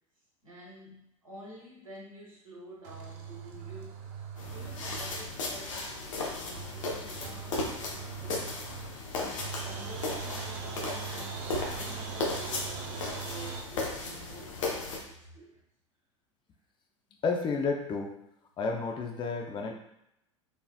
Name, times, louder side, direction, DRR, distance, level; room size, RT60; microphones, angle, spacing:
voice 1, 0.4-8.5 9.1-15.6, right 1 dB, 90° right, -5 dB, 1.5 m, -49 dB
sound 1, 2.8-5.5 5.7-5.8 6.0-6.1 6.5-9.1 9.4-13.6, right 6 dB, 50° right, 0.7 m, -41 dB
sound 2, 4.4-15.0, left 2 dB, 70° left, 0.9 m, -36 dB
voice 2, 17.2-18.1 18.6-19.7, left 4 dB, 30° left, 2 dB, 0.6 m, -31 dB
4.2 x 3.4 x 2.3 m, 0.81 s
figure-of-eight pair, 80°, 17 cm